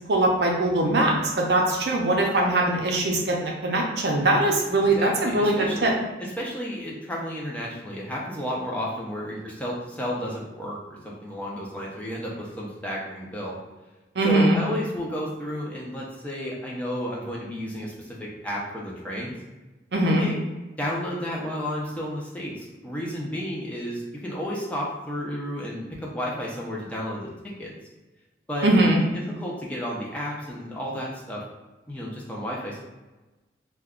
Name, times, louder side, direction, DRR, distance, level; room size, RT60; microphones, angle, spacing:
voice 1, 0.1-5.9 14.2-14.6 19.9-20.3 28.6-29.0, right 1 dB, 65° right, 0 dB, 0.5 m, -21 dB
voice 2, 4.8-13.6 14.2-19.3 20.2-20.4 20.8-27.3 27.6-27.7 28.5-31.4 31.9-32.8, equal, 10° left, -4 dB, 0.4 m, -32 dB
2.3 x 2.2 x 3.5 m, 1.1 s
head